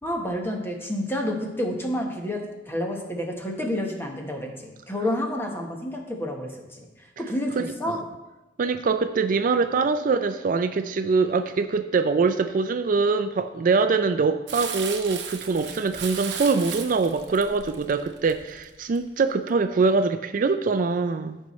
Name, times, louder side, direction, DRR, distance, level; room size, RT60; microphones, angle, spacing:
voice 1, 0.0-8.0, left 1 dB, 15° left, 1 dB, 1.2 m, -29 dB
voice 2, 7.6-8.0 8.6-21.4, right 4 dB, 50° right, 9 dB, 0.4 m, -23 dB
Crumpling crinkling, 14.5-19.0 19.5-19.6, right 7 dB, 70° right, 0.9 m, -36 dB
14.0 x 5.5 x 3.1 m, 1.0 s
head